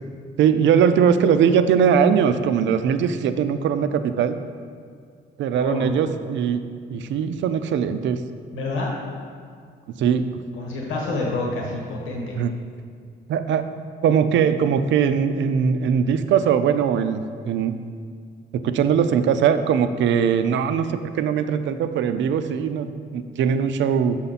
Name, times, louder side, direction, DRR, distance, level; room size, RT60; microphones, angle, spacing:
voice 1, 0.4-4.4 5.4-6.7 6.9-8.2 10.0-10.3 12.3-12.5 13.3-13.7 14.0-17.7 18.5-24.2, right 7 dB, 70° right, 10 dB, 0.4 m, -20 dB
voice 2, 5.5-5.9 8.5-9.0 10.5-12.4, left 2 dB, 80° left, -2 dB, 1.3 m, -28 dB
6.4 x 5.6 x 4.1 m, 2.1 s
cardioid pair, 90°, 20 cm